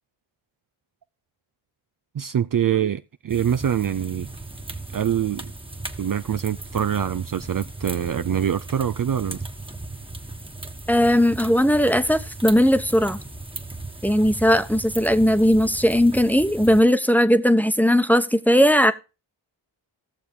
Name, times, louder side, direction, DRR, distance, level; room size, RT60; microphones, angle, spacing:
voice 1, 2.1-4.3 4.9-5.5 6.0-9.4, right 9 dB, 45° right, 0.5 m, -24 dB
sound 1, 3.3-16.8, right 2 dB, 10° right, 1.4 m, -37 dB
voice 2, 10.9-13.2 14.0-18.9, equal, 5° left, 1.1 m, -18 dB
16.5 x 6.8 x 3.7 m
cardioid pair, 60°, 46 cm